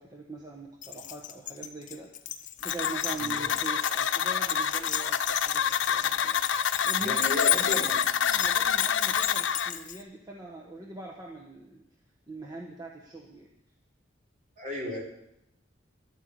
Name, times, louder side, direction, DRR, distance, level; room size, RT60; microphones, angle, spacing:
voice 1, 0.0-6.4 6.8-7.9 8.3-11.9 12.3-13.5, right 2 dB, 20° right, -1 dB, 1.2 m, -42 dB
Keys jangling, 0.8-10.0, left 12 dB, 40° left, 0.7 m, -34 dB
sound 1, 2.6-9.7, left 8 dB, 90° left, 0.7 m, -27 dB
voice 2, 3.1-3.5 7.0-8.0 14.6-15.0, left 1 dB, 40° right, -2 dB, 3.5 m, -34 dB
11.5 x 9.0 x 7.8 m, 0.81 s
head